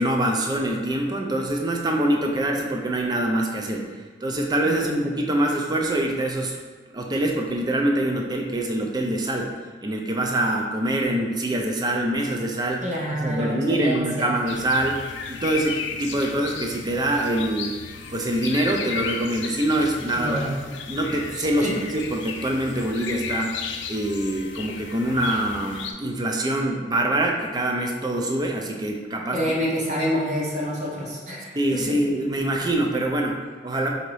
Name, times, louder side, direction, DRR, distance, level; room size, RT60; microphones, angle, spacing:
voice 1, 0.0-3.9 4.2-6.6 6.9-9.5 9.8-17.8 18.1-23.5 23.9-29.4 31.5-33.9, right 1 dB, 20° right, 1 dB, 0.5 m, -25 dB
voice 2, 4.6-4.9 12.8-14.3 20.1-20.5 21.6-21.7 29.3-32.0, equal, 40° right, -5 dB, 1.0 m, -27 dB
sound 1, 14.5-25.9, left 6 dB, 80° left, 0.4 m, -35 dB
3.8 x 2.8 x 4.7 m, 1.4 s
head